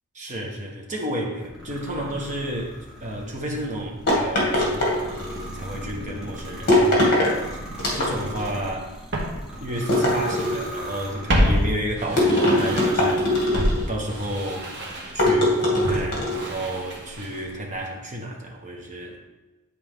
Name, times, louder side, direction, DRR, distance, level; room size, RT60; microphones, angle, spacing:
voice 1, 0.1-5.2 5.5-7.5 7.9-9.0 9.6-13.6 13.9-14.7 15.1-19.2, equal, 35° right, 0 dB, 1.3 m, -31 dB
sound 1, 1.4-11.7 12.3-13.9, equal, 5° right, 1.4 m, -39 dB
sound 2, 4.1-5.5 6.7-7.3 7.8-8.5 9.9-10.8 12.2-13.9 15.2-16.5, left 1 dB, 45° left, 2.3 m, -21 dB
Walk footsteps, 8.4-8.5 9.1-10.6 10.9-13.1 13.5-17.6 17.8-17.9, equal, 55° right, 1.5 m, -27 dB
10.0 x 4.2 x 3.7 m, 1.1 s
head